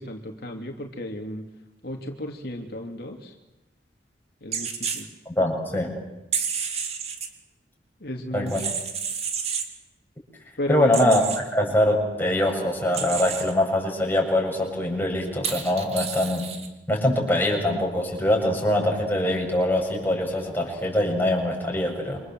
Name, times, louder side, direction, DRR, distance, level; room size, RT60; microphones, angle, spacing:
voice 1, 0.0-1.5 1.8-3.3 4.4-5.1 8.0-8.5 10.6-11.1, left 1 dB, 60° left, 3 dB, 3.0 m, -33 dB
sound 1, 4.5-5.0 6.3-7.3 8.5-9.7 10.9-11.4 12.9-13.5 15.4-16.7, right 6 dB, 35° right, 3.2 m, -30 dB
voice 2, 5.3-6.0 8.3-8.6 10.7-11.2 11.5-16.5 16.9-22.2, left 1 dB, 10° left, 0 dB, 7.7 m, -23 dB
28.5 x 26.0 x 7.8 m, 0.99 s
head